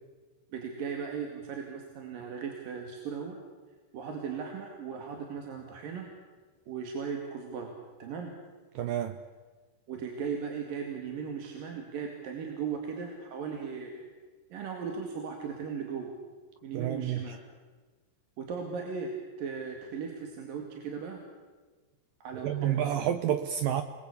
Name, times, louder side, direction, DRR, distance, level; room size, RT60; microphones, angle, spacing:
voice 1, 0.5-3.4 3.9-6.1 6.7-8.3 9.9-14.1 14.5-16.2 16.6-17.4 18.4-21.2 22.2-23.0, right 6 dB, 55° right, 3 dB, 3.5 m, -37 dB
voice 2, 8.8-9.2 16.7-17.4 22.4-23.8, right 10 dB, 80° right, 10 dB, 2.0 m, -29 dB
28.0 x 21.0 x 8.4 m, 1.4 s
omnidirectional pair, 5.2 m